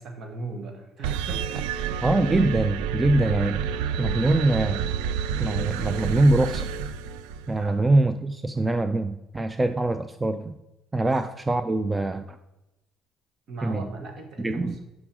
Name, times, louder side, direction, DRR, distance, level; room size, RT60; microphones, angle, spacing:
voice 1, 0.0-2.4 7.6-7.9 11.0-11.1 13.5-14.8, right 3 dB, 55° right, 4 dB, 1.9 m, -39 dB
sound 1, 1.0-7.6, right 7 dB, 85° right, 0.3 m, -29 dB
voice 2, 2.0-3.7 4.0-4.8 5.4-6.7 7.5-10.5 10.9-12.4 13.6-13.9 14.4-14.8, right 2 dB, 20° right, 10 dB, 0.5 m, -23 dB
6.2 x 5.8 x 6.1 m, 0.94 s
supercardioid pair, 70°, 0 cm